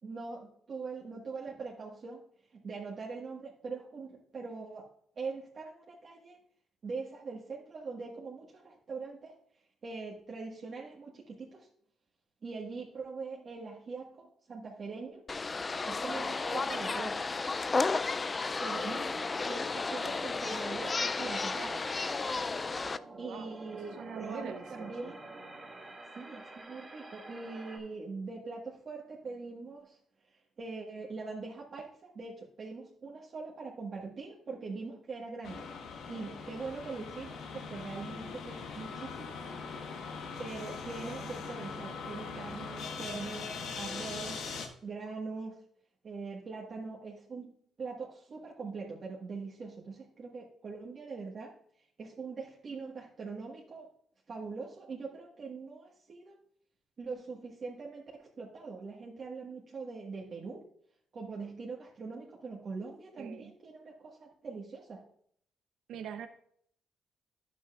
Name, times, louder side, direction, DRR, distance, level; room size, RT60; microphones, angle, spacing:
voice 1, 0.0-2.2 2.5-4.9 5.1-6.4 6.8-9.3 9.8-11.7 12.4-15.2 15.8-17.2 18.6-22.0 23.2-25.2 26.1-30.0 30.3-31.9 32.1-35.6 36.1-39.4 40.4-44.5 44.8-45.6 46.0-51.5 52.0-53.9 54.3-56.4 57.0-60.6 61.1-65.1, right 4 dB, 45° right, -3 dB, 1.5 m, -42 dB
sound 1, 15.3-23.0, left 3 dB, 30° left, 0.3 m, -33 dB
sound 2, 20.5-27.8, right 2 dB, 20° right, 2.1 m, -48 dB
voice 2, 23.1-25.1 63.2-63.5 65.9-66.3, right 8 dB, 80° right, 8 dB, 0.7 m, -44 dB
sound 3, 35.4-44.7, left 5 dB, 75° left, 1.2 m, -41 dB
10.0 x 8.2 x 2.4 m, 0.65 s
cardioid pair, 90°, 0 cm